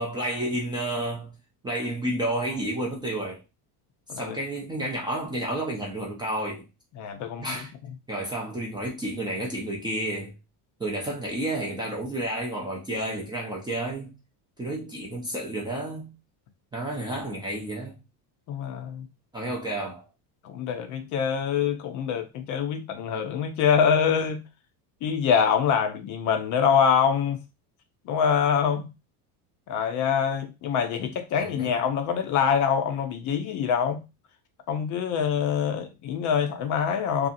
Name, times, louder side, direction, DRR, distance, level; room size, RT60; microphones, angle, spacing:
voice 1, 0.0-1.3 1.6-3.4 4.1-6.7 7.4-7.7 8.1-10.3 10.8-14.1 14.6-16.1 16.7-18.0 19.3-20.1 31.0-31.1 31.4-31.8, right 1 dB, 10° right, 0.4 m, -31 dB
voice 2, 7.0-7.5 18.5-19.1 20.4-24.4 25.0-27.4 28.1-28.9 29.7-34.0 34.7-37.3, left 7 dB, 45° left, 0.5 m, -25 dB
2.7 x 2.4 x 2.5 m
cardioid pair, 155°, 43 cm